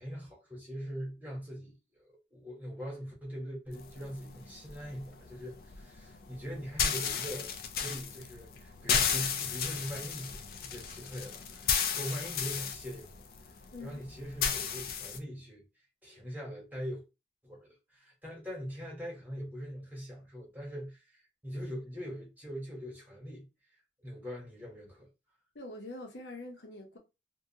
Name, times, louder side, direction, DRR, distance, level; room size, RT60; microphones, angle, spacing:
voice 1, 0.0-13.1 13.8-15.6 16.0-17.0 17.4-23.5 24.0-25.1, equal, 10° right, 1.1 m, -42 dB
sound 1, 3.7-15.2, left 7 dB, 55° left, 0.4 m, -34 dB
voice 2, 25.5-27.0, left 2 dB, 85° left, 0.8 m, -44 dB
2.7 x 2.3 x 2.7 m
head